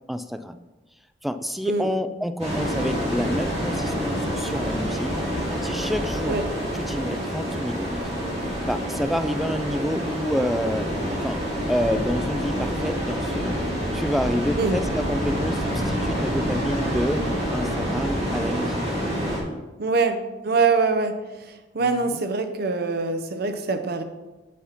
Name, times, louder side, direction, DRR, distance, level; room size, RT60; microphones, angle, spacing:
voice 1, 0.1-0.6 1.2-5.1 5.6-6.4 6.7-8.0 8.7-10.9 11.2-11.4 11.7-13.5 13.9-17.2 17.5-19.4 21.8-22.2, equal, ahead, 10 dB, 0.3 m, -28 dB
sound 1, 2.4-19.4, equal, 35° right, 2.7 m, -27 dB
voice 2, 19.8-21.1 21.7-24.0, right 4 dB, 60° right, 7 dB, 0.8 m, -23 dB
8.4 x 5.8 x 4.1 m, 1.1 s
head